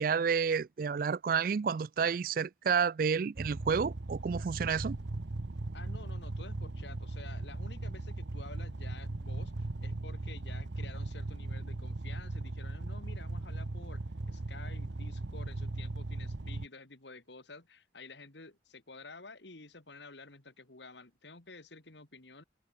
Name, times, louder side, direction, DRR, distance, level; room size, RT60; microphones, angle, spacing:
voice 1, 0.0-5.0, right 6 dB, 50° right, 0.3 m, -30 dB
sound 1, 3.4-16.7, right 2 dB, 75° right, 1.0 m, -38 dB
voice 2, 5.7-22.4, left 3 dB, 70° left, 2.5 m, -51 dB
head